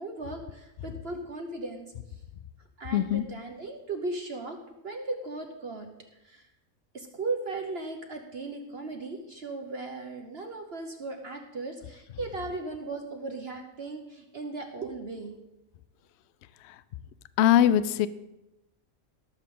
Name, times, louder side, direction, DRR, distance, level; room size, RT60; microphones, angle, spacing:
voice 1, 0.0-1.9 2.8-4.6 4.8-5.9 6.2-6.4 6.9-15.4, right 3 dB, 50° right, 4 dB, 1.1 m, -37 dB
voice 2, 2.9-3.2 17.4-18.1, left 11 dB, 65° left, 15 dB, 0.7 m, -21 dB
18.5 x 7.3 x 3.8 m, 0.91 s
omnidirectional pair, 1.5 m